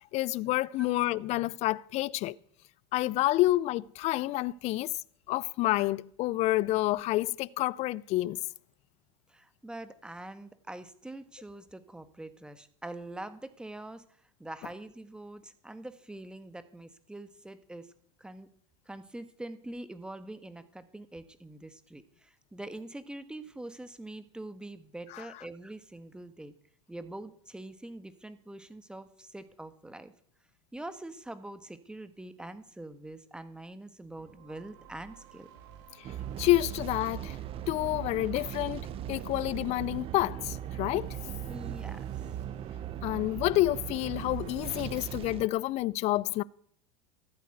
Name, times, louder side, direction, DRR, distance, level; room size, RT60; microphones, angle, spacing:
voice 1, 0.1-2.4 2.9-4.9 5.3-8.4 25.1-25.2 36.4-37.4 37.7-41.2 43.0-46.4, left 17 dB, 45° left, 0.5 m, -28 dB
voice 2, 9.3-14.0 14.4-17.9 18.2-18.5 18.8-26.5 26.9-30.1 30.7-35.5 41.5-42.3, right 1 dB, 5° right, 1.5 m, -44 dB
sound 1, 34.2-45.2, right 9 dB, 65° right, 3.1 m, -53 dB
sound 2, 36.0-45.5, right 11 dB, 40° right, 0.8 m, -38 dB
14.0 x 8.4 x 8.0 m
hypercardioid pair, 95°, 15 cm